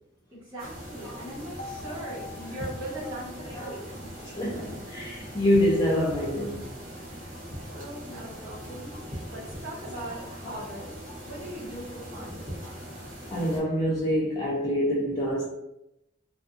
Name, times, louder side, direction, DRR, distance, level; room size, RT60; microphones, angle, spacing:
voice 1, 0.3-4.2 7.1-12.4, right 1 dB, 25° right, 0.9 m, -40 dB
sound 1, 0.6-13.6, equal, 50° right, 1.0 m, -41 dB
sound 2, 1.6-5.6, left 2 dB, 85° left, 0.7 m, -46 dB
voice 2, 4.4-6.7 10.4-10.6 12.6-12.8 13.3-15.4, equal, 20° left, 0.5 m, -26 dB
2.5 x 2.3 x 2.6 m
head